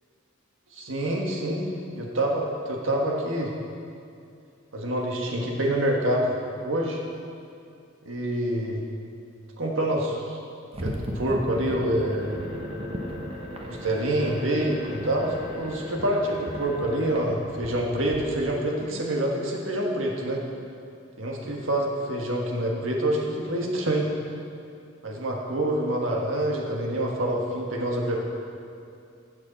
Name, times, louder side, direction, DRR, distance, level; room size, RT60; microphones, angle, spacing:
voice 1, 0.7-1.7 1.9-3.5 4.7-6.4 6.6-7.0 8.0-8.8 9.6-10.4 10.8-12.3 13.6-20.4 21.2-24.1 25.0-28.2, right 1 dB, 85° right, -1 dB, 1.6 m, -26 dB
sound 1, 10.7-18.2, equal, 30° right, 1.0 m, -36 dB
15.5 x 6.5 x 4.1 m, 2.5 s
head